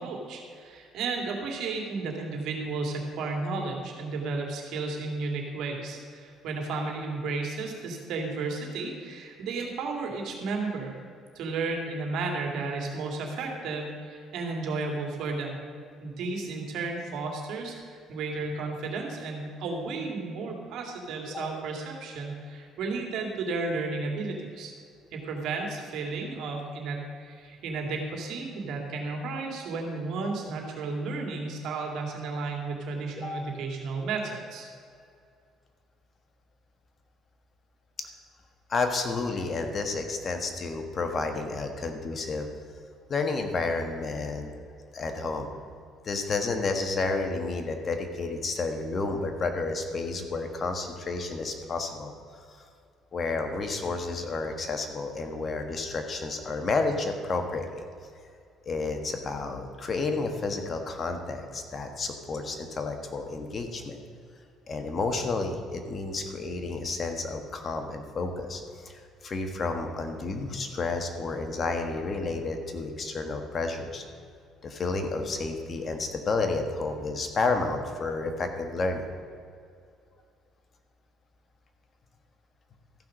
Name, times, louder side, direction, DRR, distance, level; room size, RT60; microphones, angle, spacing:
voice 1, 0.0-11.0 11.3-15.6 16.0-24.7 25.1-34.7, right 3 dB, 70° right, 1 dB, 2.3 m, -33 dB
voice 2, 33.2-33.5 38.7-42.5 43.1-44.5 44.9-45.6 46.0-52.1 52.5-52.7 53.1-57.8 58.6-64.0 64.7-74.0 74.6-79.1, left 3 dB, 40° left, 5 dB, 1.4 m, -31 dB
14.0 x 5.9 x 6.4 m, 2.3 s
cardioid pair, 95°, 0 cm